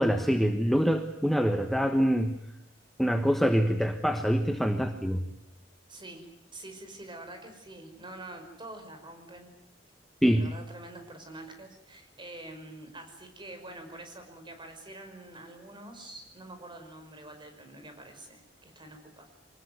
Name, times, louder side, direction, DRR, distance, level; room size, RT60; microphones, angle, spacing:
voice 1, 0.0-2.4 3.0-5.2 10.2-10.5, equal, ahead, 5 dB, 1.2 m, -25 dB
voice 2, 5.9-9.5 10.3-19.3, right 2 dB, 25° right, 6 dB, 5.6 m, -46 dB
24.5 x 20.0 x 9.5 m, 0.79 s
head